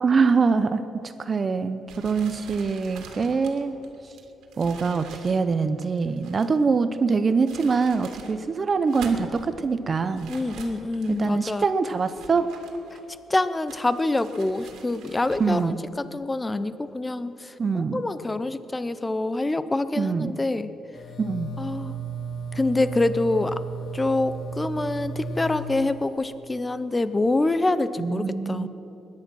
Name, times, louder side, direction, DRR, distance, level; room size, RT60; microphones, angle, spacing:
voice 1, 0.0-3.8 4.0-4.1 4.6-10.3 11.2-12.5 15.4-15.8 17.6-18.0 20.0-20.3 21.2-21.5 28.0-28.7, right 4 dB, 30° right, 11 dB, 0.6 m, -24 dB
sound 1, 1.9-6.6 7.2-8.4 8.7-9.5 10.1-11.3 11.9-13.2 13.7-15.7, right 5 dB, 85° right, 2.1 m, -45 dB
voice 2, 10.3-11.6 12.9-13.0 13.3-20.7 21.6-22.0 22.5-23.6 23.9-28.7, left 2 dB, 15° left, 13 dB, 0.6 m, -26 dB
sound 2, 20.9-26.3, right 4 dB, 55° left, 1.5 m, -34 dB
21.0 x 10.5 x 6.1 m, 3.0 s
cardioid pair, 135°, 0 cm